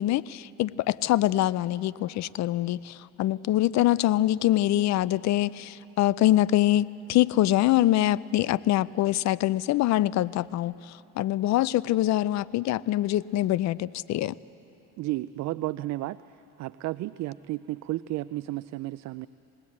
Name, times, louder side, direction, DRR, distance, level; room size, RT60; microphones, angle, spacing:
voice 1, 0.0-10.7 11.2-14.3, left 14 dB, 55° left, 20 dB, 0.5 m, -24 dB
voice 2, 15.0-16.2 16.6-19.3, right 17 dB, 55° right, 15 dB, 0.4 m, -32 dB
21.0 x 19.0 x 8.5 m, 3.0 s
supercardioid pair, 90°, 33 cm